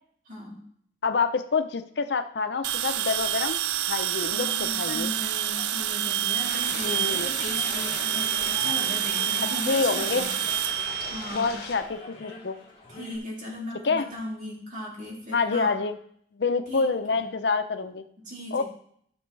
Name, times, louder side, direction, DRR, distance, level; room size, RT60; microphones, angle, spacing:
voice 1, 0.2-0.6 4.3-10.3 11.1-11.6 12.9-15.7 16.7-16.8 17.1-17.3 18.2-18.6, left 1 dB, 45° right, -3 dB, 3.0 m, -37 dB
voice 2, 1.0-3.6 3.9-5.1 6.8-7.3 9.7-10.3 11.3-12.6 13.8-14.1 15.3-15.9 16.3-18.0 18.5-18.6, left 4 dB, 80° left, 9 dB, 0.6 m, -27 dB
sound 1, 2.6-11.9, right 11 dB, 85° right, 0.4 m, -28 dB
sound 2, 4.4-13.2, left 2 dB, 30° left, 2.4 m, -45 dB
sound 3, 6.4-11.8, left 4 dB, 55° left, 1.6 m, -39 dB
13.5 x 6.1 x 3.3 m, 0.64 s
head